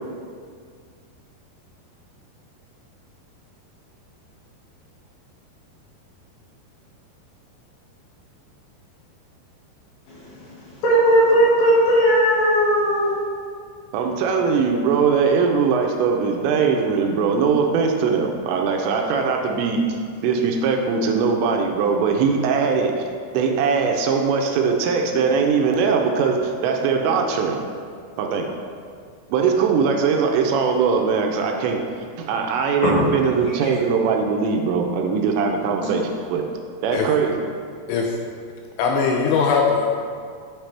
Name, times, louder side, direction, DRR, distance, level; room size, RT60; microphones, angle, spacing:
voice 1, 10.1-13.1 32.8-33.0 33.5-33.7 35.8-35.9 39.3-39.5, equal, 60° left, -7 dB, 3.1 m, -18 dB
voice 2, 13.9-23.1 23.3-27.6 28.2-28.5 29.3-31.8 32.2-36.5 36.8-37.4, right 5 dB, 80° right, 2 dB, 2.8 m, -21 dB
voice 3, 38.8-39.9, left 5 dB, 80° left, 1 dB, 2.6 m, -20 dB
8.9 x 5.6 x 3.3 m, 2.1 s
omnidirectional pair, 5.2 m